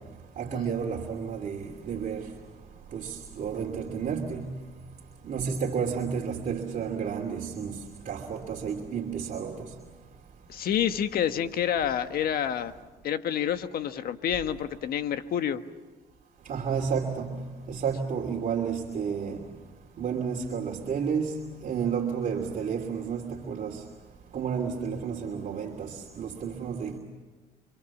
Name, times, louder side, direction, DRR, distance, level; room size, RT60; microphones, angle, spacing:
voice 1, 0.4-2.3 2.9-4.7 5.2-7.8 8.1-9.7 16.5-19.4 20.0-21.3 21.6-23.8 24.3-27.0, right 6 dB, 50° right, 2.9 m, -31 dB
voice 2, 10.5-12.7 13.0-15.6, left 9 dB, 60° left, 1.5 m, -28 dB
30.0 x 25.5 x 7.3 m
cardioid pair, 110°, 17 cm